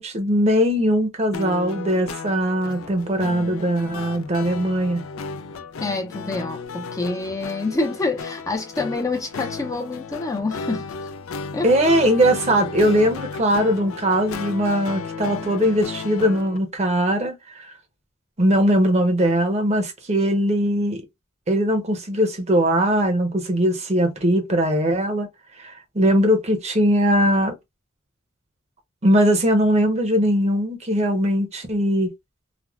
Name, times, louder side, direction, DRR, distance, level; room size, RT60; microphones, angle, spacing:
voice 1, 0.0-5.0 11.6-17.7 18.4-21.0 21.5-25.3 25.6-27.6 29.0-32.1, equal, 35° right, 0.7 m, -20 dB
All You Wanted loop, 1.3-16.6, left 4 dB, 85° left, 0.4 m, -34 dB
voice 2, 5.8-10.9 11.5-11.7, left 3 dB, 15° left, 0.5 m, -27 dB
3.4 x 2.1 x 2.3 m
head